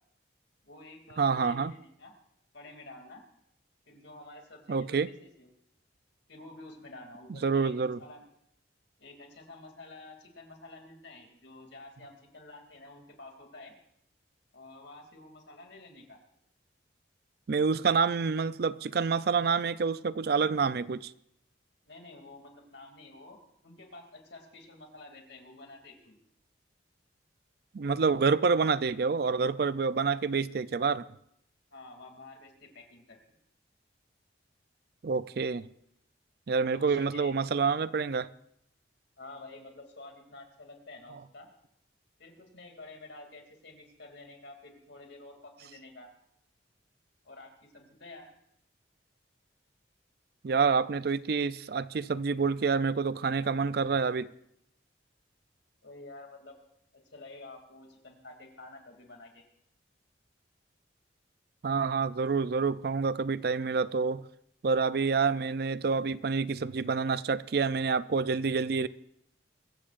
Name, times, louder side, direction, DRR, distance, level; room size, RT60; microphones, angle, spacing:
voice 1, 0.6-2.1 2.5-3.2 3.9-5.5 6.3-8.2 9.0-13.7 14.5-16.2 21.9-26.1 31.7-33.2 36.6-37.3 39.2-41.5 42.2-46.1 47.2-48.3 55.8-56.6 56.9-59.4, left 2 dB, 70° left, 2.7 m, -50 dB
voice 2, 1.2-1.7 4.7-5.1 7.4-8.0 17.5-21.1 27.7-31.0 35.0-35.7 36.5-38.3 50.4-54.3 61.6-64.2 64.6-68.9, right 5 dB, 55° right, 0.4 m, -27 dB
23.0 x 15.0 x 2.5 m
head